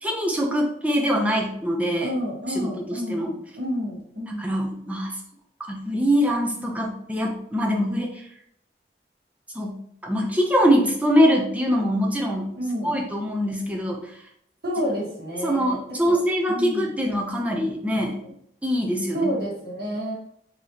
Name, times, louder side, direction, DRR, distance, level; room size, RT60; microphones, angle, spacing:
voice 1, 0.0-2.1 2.6-3.3 4.3-5.2 5.7-8.2 9.5-12.5 12.8-14.1 15.4-18.2 18.6-19.3, equal, 10° right, 0 dB, 0.6 m, -23 dB
voice 2, 2.0-4.5 12.6-12.9 14.6-16.2 16.5-16.9 18.2-18.3 19.1-20.1, equal, 60° right, -4 dB, 1.5 m, -29 dB
3.9 x 3.1 x 2.9 m, 0.71 s
head